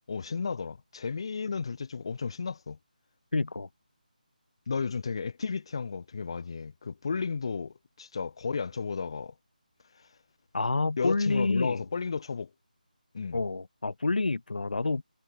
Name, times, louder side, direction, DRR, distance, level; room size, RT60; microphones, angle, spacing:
voice 1, 0.1-2.8 4.7-9.3 11.0-12.5 13.1-13.4, left 5 dB, 35° left, 1.1 m, -33 dB
voice 2, 3.3-3.7 10.5-11.9 13.3-15.0, left 3 dB, 75° left, 0.6 m, -28 dB
figure-of-eight pair, 175°, 5 cm